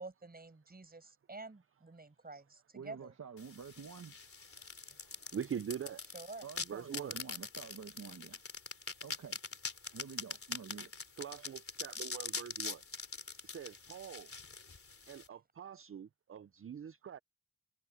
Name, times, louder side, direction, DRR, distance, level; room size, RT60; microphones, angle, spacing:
voice 1, 0.0-3.1 6.1-6.4 9.9-10.0, right 3 dB, 30° right, 7.0 m, -49 dB
voice 2, 2.7-4.1 6.4-8.4 9.0-9.4 9.9-10.9, right 6 dB, 65° right, 1.3 m, -48 dB
sound 1, 3.4-15.3, left 4 dB, 50° left, 3.4 m, -44 dB
voice 3, 5.0-6.0 6.6-7.2 11.2-12.8 13.4-14.3 15.0-17.2, right 8 dB, 50° right, 0.5 m, -44 dB
wide cardioid pair, 100°, 29 cm